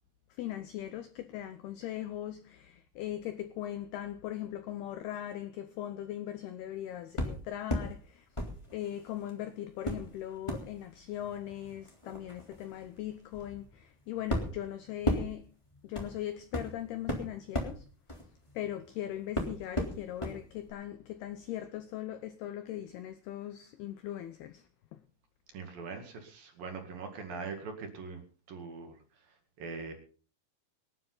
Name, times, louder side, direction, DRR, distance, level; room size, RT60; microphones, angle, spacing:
voice 1, 0.3-8.3 8.7-15.5 15.8-17.8 18.5-24.6 24.9-25.0, left 12 dB, 80° left, 2.3 m, -39 dB
sound 1, 7.2-7.9 8.3-9.3 9.8-18.9 19.3-20.4 20.7-20.8, left 1 dB, 10° left, 2.2 m, -36 dB
voice 2, 25.5-28.2 28.5-28.9 29.6-29.9, right 4 dB, 55° right, 3.4 m, -41 dB
25.0 x 9.8 x 3.9 m
omnidirectional pair, 5.6 m